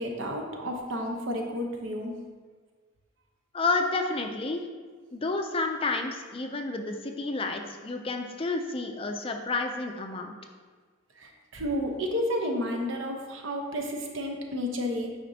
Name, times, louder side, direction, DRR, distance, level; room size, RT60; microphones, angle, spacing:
voice 1, 0.0-2.1 11.2-15.1, equal, 70° right, 1 dB, 0.9 m, -31 dB
voice 2, 3.5-4.7 5.1-10.3, left 3 dB, 25° left, 4 dB, 0.4 m, -30 dB
9.1 x 5.0 x 2.8 m, 1.5 s
head